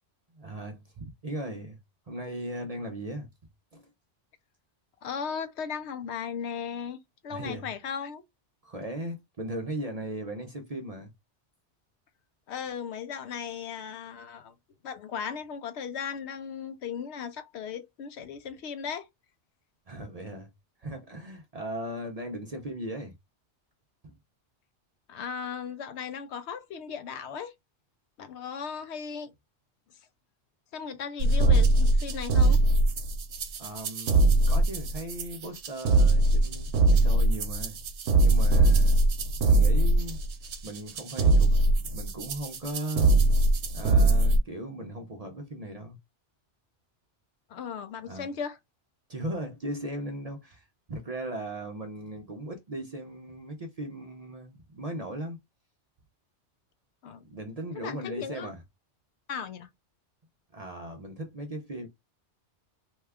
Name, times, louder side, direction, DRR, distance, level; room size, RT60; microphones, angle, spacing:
voice 1, 0.3-1.8 2.1-3.3 3.7-3.9 7.3-7.7 8.6-11.1 19.9-20.5 20.8-23.1 24.0-24.1 33.6-37.8 38.2-40.2 40.6-43.1 43.7-46.0 48.1-48.3 49.1-55.4 57.2-58.6 60.5-61.9, right 1 dB, 45° right, 0.6 m, -38 dB
voice 2, 5.0-8.2 12.5-14.5 14.8-19.1 25.1-27.5 28.2-29.3 30.7-32.6 47.5-48.6 57.0-57.2 57.7-58.5 59.3-59.7, left 7 dB, 70° left, 0.8 m, -37 dB
sound 1, 31.2-44.4, right 2 dB, 70° right, 0.9 m, -22 dB
2.8 x 2.3 x 3.3 m
omnidirectional pair, 1.2 m